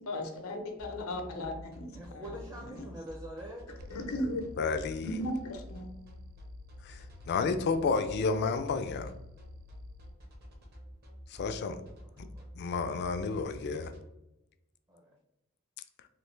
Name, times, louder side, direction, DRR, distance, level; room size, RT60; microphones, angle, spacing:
voice 1, 0.0-2.3 2.7-2.8 3.9-4.4 5.0-5.9, left 1 dB, 90° left, 4 dB, 0.6 m, -36 dB
sound 1, 0.8-14.0, equal, 50° right, 0.8 m, -48 dB
voice 2, 1.9-3.7 12.1-12.5 14.9-15.2, equal, 15° right, -1 dB, 0.4 m, -45 dB
sound 2, 3.8-10.2, left 8 dB, 80° right, 0.3 m, -56 dB
voice 3, 4.6-5.2 6.8-7.0 7.3-9.1 11.3-11.8 12.2-12.3 12.6-13.9, left 4 dB, 50° left, 9 dB, 0.3 m, -31 dB
3.1 x 2.4 x 3.1 m, 0.93 s
head